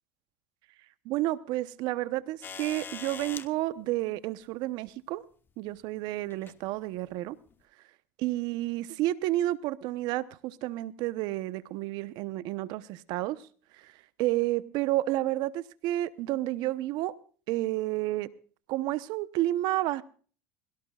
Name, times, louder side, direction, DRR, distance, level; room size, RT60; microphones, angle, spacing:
voice 1, 1.0-5.2 5.6-7.4 8.2-13.4 13.7-13.9 14.2-17.1 17.5-18.3 18.7-20.0, right 16 dB, 65° right, 0.9 m, -30 dB
sound 1, 2.4-3.5 4.9-5.0 6.3-6.6 7.5-7.6, left 6 dB, 25° left, 1.2 m, -41 dB
21.5 x 17.5 x 2.4 m
supercardioid pair, 115°, 8 cm